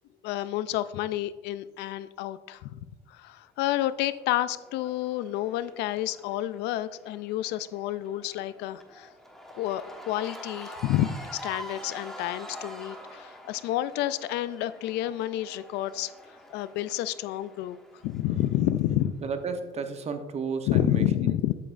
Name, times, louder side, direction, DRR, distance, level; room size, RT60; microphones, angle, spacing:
voice 1, 0.2-2.8 3.1-9.1 9.5-16.1 16.5-17.8 18.0-19.1 20.7-21.5, left 13 dB, 85° left, 15 dB, 0.4 m, -29 dB
Cheering / Crowd, 3.7-19.0, equal, ahead, 1.2 m, -46 dB
voice 2, 18.2-18.6 19.2-21.5, right 5 dB, 40° right, 7 dB, 0.9 m, -34 dB
9.1 x 8.3 x 2.5 m, 1.3 s
cardioid pair, 110°, 17 cm